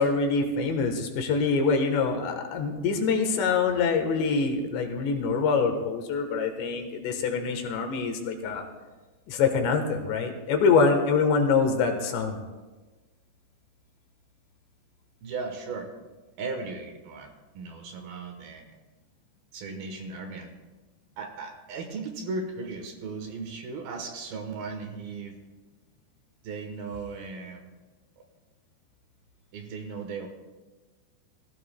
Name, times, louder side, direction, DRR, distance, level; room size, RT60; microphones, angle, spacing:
voice 1, 0.0-8.6 9.3-12.4, left 4 dB, 85° left, 4 dB, 3.6 m, -25 dB
voice 2, 15.2-15.9 16.4-17.3 17.5-18.6 19.5-20.5 21.2-25.4 26.4-27.6 29.5-30.3, right 4 dB, 70° right, 4 dB, 2.8 m, -36 dB
21.5 x 14.5 x 2.3 m, 1.2 s
omnidirectional pair, 5.0 m